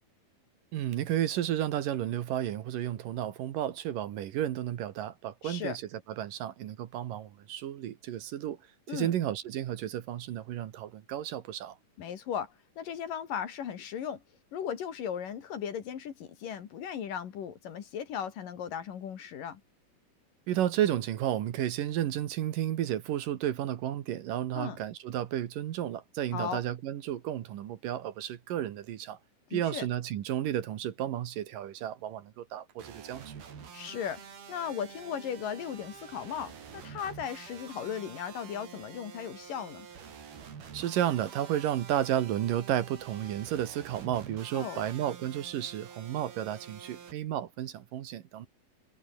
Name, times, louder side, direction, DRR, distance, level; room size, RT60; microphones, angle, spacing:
voice 1, 0.7-5.8 6.2-8.6 8.9-11.8 20.5-29.2 29.5-33.4 40.7-48.5, right 11 dB, 70° right, 2.9 m, -32 dB
voice 2, 5.4-5.8 8.9-9.1 12.0-14.2 14.5-19.6 24.6-24.8 26.3-26.6 29.5-29.9 33.7-34.2 34.5-39.9 44.5-44.8, left 8 dB, 65° left, 3.7 m, -37 dB
sound 1, 32.8-47.1, right 7 dB, 85° right, 5.8 m, -48 dB
omnidirectional pair, 4.3 m